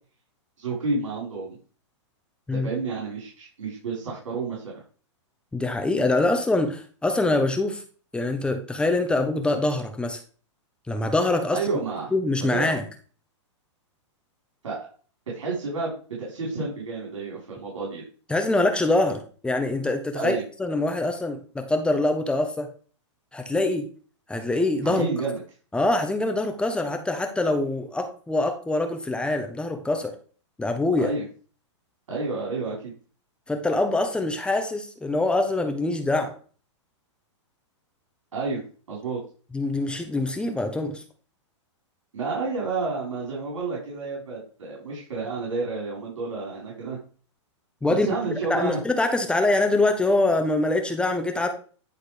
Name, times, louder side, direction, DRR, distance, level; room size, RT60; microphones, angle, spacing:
voice 1, 0.6-1.5 2.5-4.6 11.5-12.1 12.4-12.7 14.6-14.8 15.3-15.9 16.2-18.0 20.1-20.4 24.8-25.4 31.0-31.2 32.1-32.9 38.3-38.6 38.9-39.2 42.1-47.0 47.9-48.8, right 3 dB, 85° right, -3 dB, 4.7 m, -30 dB
voice 2, 5.5-7.8 8.1-10.2 10.9-11.6 12.1-12.8 18.3-22.7 23.3-23.9 24.3-25.0 25.7-30.2 30.6-31.1 33.5-36.3 39.5-41.0 47.8-51.5, left 2 dB, 5° left, 5 dB, 1.1 m, -24 dB
10.5 x 4.2 x 5.1 m, 0.40 s
hypercardioid pair, 135°, 16 cm